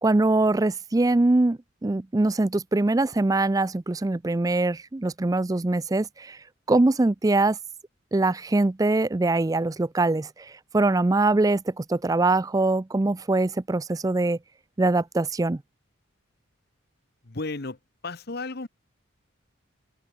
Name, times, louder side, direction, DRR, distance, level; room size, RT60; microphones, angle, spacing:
voice 1, 0.0-6.4 6.7-7.6 8.1-10.3 10.7-14.4 14.8-15.6, right 2 dB, 15° right, 0.4 m, -23 dB
voice 2, 17.2-18.7, left 3 dB, 50° left, 1.2 m, -34 dB
open air
head